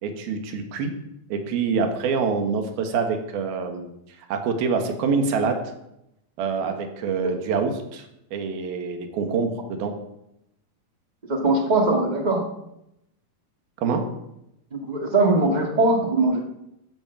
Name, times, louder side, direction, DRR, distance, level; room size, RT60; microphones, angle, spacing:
voice 1, 0.0-0.9 1.3-3.9 4.3-5.6 6.4-8.1 8.3-9.9 13.8-14.1, right 5 dB, 85° right, 6 dB, 3.6 m, -25 dB
voice 2, 11.3-12.4 14.7-16.4, right 2 dB, 55° right, 3 dB, 0.4 m, -21 dB
13.0 x 10.5 x 7.3 m, 0.84 s
omnidirectional pair, 4.2 m